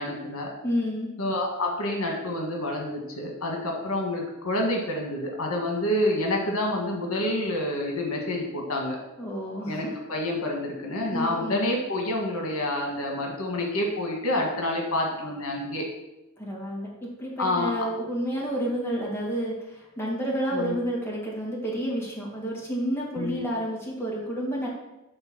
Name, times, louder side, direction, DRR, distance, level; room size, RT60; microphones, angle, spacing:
voice 1, 0.0-0.5 1.2-9.0 9.7-15.9 17.4-17.7 20.5-20.7 23.2-23.4, left 1 dB, 80° left, 0 dB, 1.6 m, -28 dB
voice 2, 0.6-1.1 9.2-9.9 11.1-11.6 16.4-24.7, equal, 10° left, -4 dB, 1.9 m, -30 dB
8.8 x 3.9 x 6.1 m, 0.95 s
head